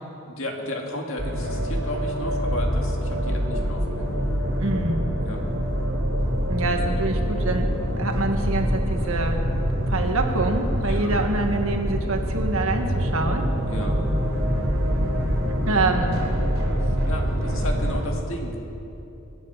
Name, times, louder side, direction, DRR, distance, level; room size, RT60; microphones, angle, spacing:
voice 1, 0.3-4.2 5.2-5.4 10.8-11.1 13.7-14.0 15.7-16.0 16.8-18.6, left 1 dB, 70° left, 1 dB, 2.1 m, -34 dB
sound 1, 1.2-18.0, equal, 60° right, 3.7 m, -25 dB
voice 2, 4.6-5.1 6.5-9.4 9.8-13.5 15.6-16.2, right 2 dB, 80° right, 4 dB, 1.6 m, -26 dB
25.5 x 9.2 x 5.7 m, 3.0 s
head